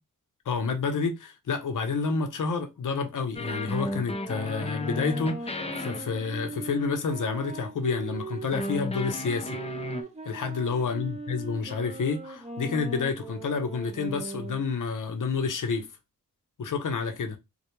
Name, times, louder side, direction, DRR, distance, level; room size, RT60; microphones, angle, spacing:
voice 1, 0.5-9.6 10.3-15.8 16.6-17.4, left 5 dB, 60° left, 0.7 m, -29 dB
sound 1, 3.3-8.8 9.4-14.6, right 3 dB, 20° right, 0.8 m, -39 dB
sound 2, 3.4-6.7 8.5-10.0, left 2 dB, 20° left, 0.5 m, -34 dB
2.3 x 2.2 x 2.9 m
cardioid pair, 45°, 36 cm